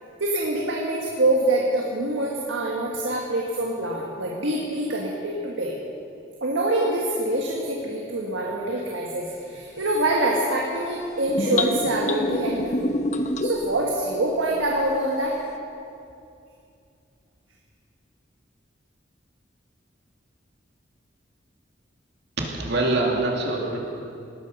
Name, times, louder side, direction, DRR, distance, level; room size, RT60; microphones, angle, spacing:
voice 1, 0.2-5.7 6.4-12.9 13.4-15.4, right 1 dB, 85° right, -2 dB, 1.6 m, -25 dB
sound 1, 11.3-13.7, left 1 dB, 40° left, 0.8 m, -26 dB
voice 2, 22.4-23.8, right 2 dB, 65° right, -1 dB, 2.5 m, -24 dB
19.0 x 11.5 x 5.5 m, 2.5 s
head